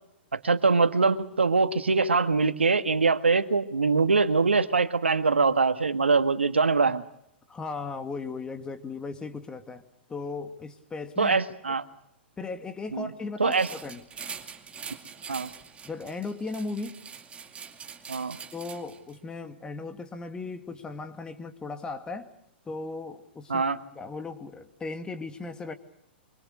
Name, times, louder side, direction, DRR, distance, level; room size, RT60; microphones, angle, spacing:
voice 1, 0.3-7.0 11.2-11.8 12.9-13.1 13.4-13.7 15.3-15.5 18.1-18.4 23.5-23.8, right 4 dB, 85° right, 10 dB, 1.7 m, -23 dB
voice 2, 7.5-9.8 10.1-11.4 12.4-14.0 15.9-17.0 18.5-22.3 22.7-23.6 23.9-25.7, left 3 dB, 15° left, 7 dB, 2.4 m, -37 dB
sound 1, 13.5-19.2, right 6 dB, 20° right, 2.5 m, -43 dB
25.0 x 24.5 x 6.6 m, 0.74 s
figure-of-eight pair, 110°, 6 cm